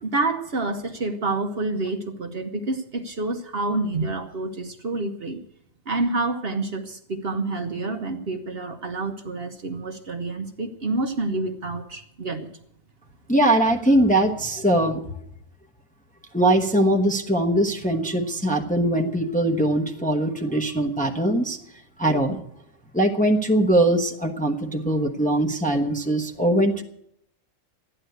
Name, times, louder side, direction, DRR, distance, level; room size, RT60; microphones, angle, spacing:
voice 1, 0.0-5.4 5.9-12.5, right 2 dB, 50° right, 5 dB, 1.1 m, -28 dB
voice 2, 13.3-15.0 16.3-21.6 22.0-22.4 22.9-26.8, right 1 dB, 5° left, 3 dB, 1.0 m, -21 dB
13.0 x 10.0 x 8.0 m, 0.74 s
omnidirectional pair, 1.4 m